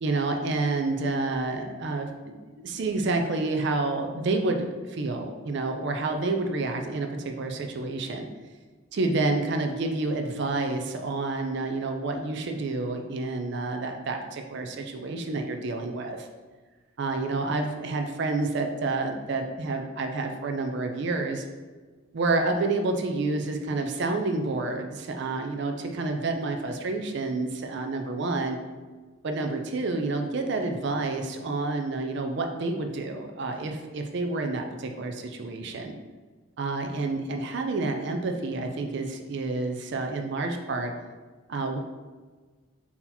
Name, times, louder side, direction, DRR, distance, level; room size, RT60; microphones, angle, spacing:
voice 1, 0.0-8.3 8.9-16.3 17.0-21.5 22.1-28.6 29.2-35.9 36.6-40.9 41.5-41.8, right 3 dB, 55° right, 4 dB, 0.4 m, -29 dB
3.9 x 2.8 x 4.1 m, 1.4 s
head